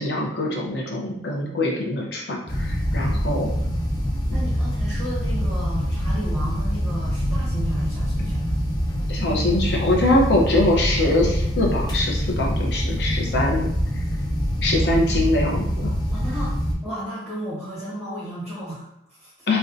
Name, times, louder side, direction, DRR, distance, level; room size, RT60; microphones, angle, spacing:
voice 1, 0.0-3.5 9.1-14.0 14.6-15.9 19.5-19.6, left 1 dB, 65° left, -1 dB, 0.6 m, -23 dB
sound 1, 2.5-16.7, equal, 25° left, 0.3 m, -24 dB
voice 2, 4.3-8.5 16.1-16.5 16.8-19.5, equal, 5° right, -9 dB, 0.7 m, -34 dB
2.5 x 2.2 x 2.5 m, 0.77 s
head